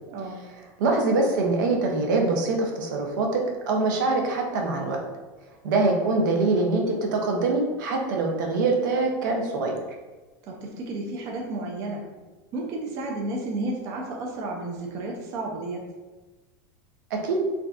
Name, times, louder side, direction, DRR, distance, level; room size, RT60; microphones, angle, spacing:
voice 1, 0.1-0.4 10.5-12.0 12.5-15.8, right 2 dB, 30° right, -1 dB, 0.4 m, -32 dB
voice 2, 0.8-3.4 3.7-5.0 5.6-9.7 17.1-17.4, right 3 dB, 80° right, 1 dB, 0.6 m, -24 dB
3.4 x 2.6 x 2.3 m, 1.2 s
supercardioid pair, 170°, 10 cm